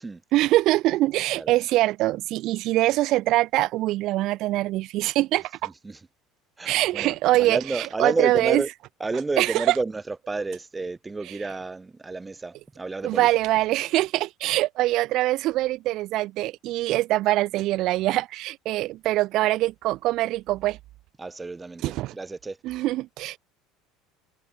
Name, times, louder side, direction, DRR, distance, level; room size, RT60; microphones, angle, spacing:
voice 1, 0.3-5.7 6.6-8.6 9.4-9.8 11.3-11.4 13.0-20.8 21.8-22.1 22.6-23.4, right 17 dB, 55° right, 0.5 m, -23 dB
voice 2, 5.6-6.1 6.6-8.7 9.0-13.3 21.2-22.6, right 3 dB, 15° right, 2.3 m, -30 dB
figure-of-eight pair, 65°, 0 cm